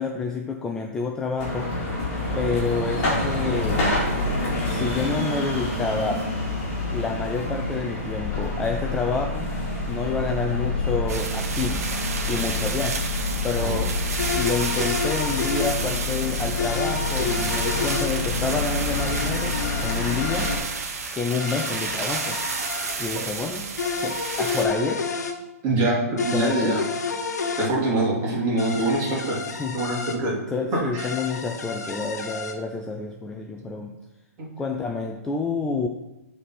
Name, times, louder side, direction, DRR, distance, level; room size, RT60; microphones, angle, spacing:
voice 1, 0.0-1.7 2.3-4.0 4.6-6.3 6.9-9.5 9.9-11.9 12.3-13.0 13.4-13.9 14.3-20.5 21.1-22.4 23.0-23.7 24.0-25.2 26.3-26.8 29.4-29.8 30.5-34.0 34.6-35.9, left 4 dB, 5° left, 2 dB, 0.3 m, -28 dB
sound 1, 1.4-20.6, left 2 dB, 30° left, 2.4 m, -27 dB
sound 2, 11.1-24.7, right 4 dB, 65° right, 1.4 m, -31 dB
sound 3, 14.2-15.8 16.6-18.1 19.0-20.6 21.4-23.0 23.8-25.4 26.2-27.7 28.6-30.2 31.0-32.6, left 4 dB, 85° left, 1.0 m, -30 dB
voice 2, 25.6-26.8 27.6-29.4 29.7-30.3 30.7-31.1 34.4-34.5, right 2 dB, 25° right, -5 dB, 2.6 m, -24 dB
7.1 x 4.1 x 5.9 m, 0.97 s
hypercardioid pair, 155°, 9 cm